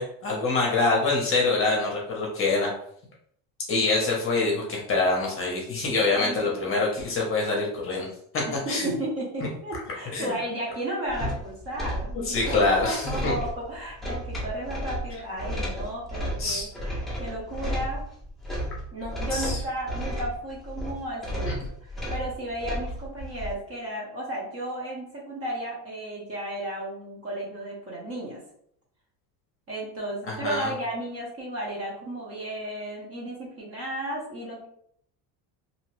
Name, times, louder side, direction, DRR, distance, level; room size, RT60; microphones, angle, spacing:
voice 1, 0.0-2.7 3.7-8.1 8.7-8.9 10.1-10.3 12.3-13.3 16.4-16.7 19.3-19.6 21.5-21.6 30.3-30.7, left 3 dB, 30° left, -2 dB, 0.8 m, -25 dB
voice 2, 6.1-6.8 8.5-18.0 18.9-28.4 29.7-34.7, right 1 dB, 35° right, -3 dB, 1.0 m, -34 dB
sound 1, 11.1-23.5, equal, ahead, 0.5 m, -33 dB
2.7 x 2.3 x 3.1 m, 0.68 s
cardioid pair, 145°, 42 cm